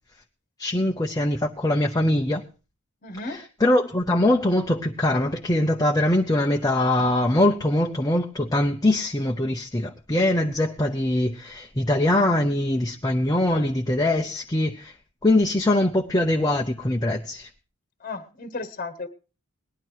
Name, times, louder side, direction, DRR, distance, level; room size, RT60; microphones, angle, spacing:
voice 1, 0.6-2.4 3.2-14.9 15.2-17.5, left 1 dB, 15° left, 0.7 m, -22 dB
voice 2, 3.0-3.4 13.5-13.7 18.0-19.1, left 3 dB, 40° left, 1.2 m, -34 dB
19.0 x 11.0 x 4.6 m
head